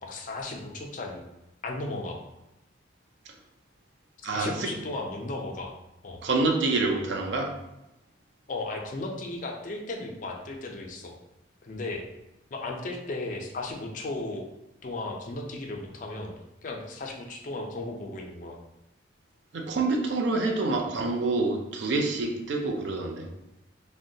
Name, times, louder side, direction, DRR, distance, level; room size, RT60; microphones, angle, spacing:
voice 1, 0.0-1.2 1.6-2.2 4.2-5.7 6.0-6.2 8.5-11.1 11.6-12.0 12.5-14.4 14.8-16.3 16.6-18.6, left 2 dB, 45° left, 1 dB, 0.4 m, -35 dB
voice 2, 4.2-4.7 6.2-7.5 19.5-23.3, right 3 dB, 70° right, 3 dB, 0.5 m, -27 dB
3.6 x 2.1 x 2.6 m, 0.93 s
head